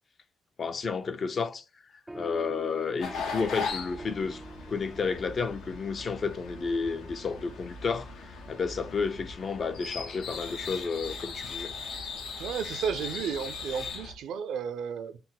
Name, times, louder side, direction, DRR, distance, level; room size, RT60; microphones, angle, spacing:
voice 1, 0.6-1.6 2.1-4.4 4.7-11.7, left 5 dB, 45° left, 0.4 m, -31 dB
sound 1, 2.1-9.0, right 2 dB, 10° right, 0.4 m, -48 dB
sound 2, 3.0-14.1, left 4 dB, 90° left, 0.8 m, -39 dB
voice 2, 12.4-15.2, right 7 dB, 80° right, 0.4 m, -33 dB
4.0 x 2.1 x 3.9 m
cardioid pair, 90°, 0 cm